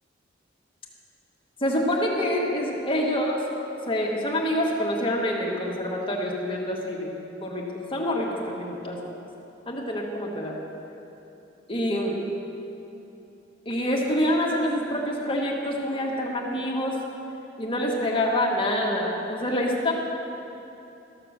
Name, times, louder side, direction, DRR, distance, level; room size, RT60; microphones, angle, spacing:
voice 1, 1.6-3.4 3.9-7.1 7.4-9.0 9.7-10.6 11.7-12.2 13.6-17.0 17.6-19.9, left 1 dB, 30° left, -2 dB, 1.6 m, -26 dB
13.5 x 6.8 x 6.5 m, 2.9 s
head